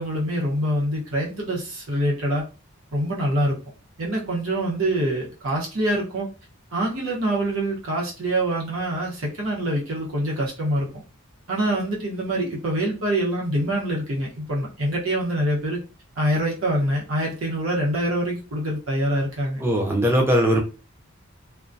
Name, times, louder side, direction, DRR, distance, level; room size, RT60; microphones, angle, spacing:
voice 1, 0.0-2.5 2.9-3.6 4.0-6.3 6.7-10.9 11.5-15.8 16.2-19.6, right 1 dB, 85° right, 0.9 m, -25 dB
voice 2, 19.6-20.6, equal, 10° right, 0.4 m, -19 dB
2.2 x 2.2 x 2.5 m
head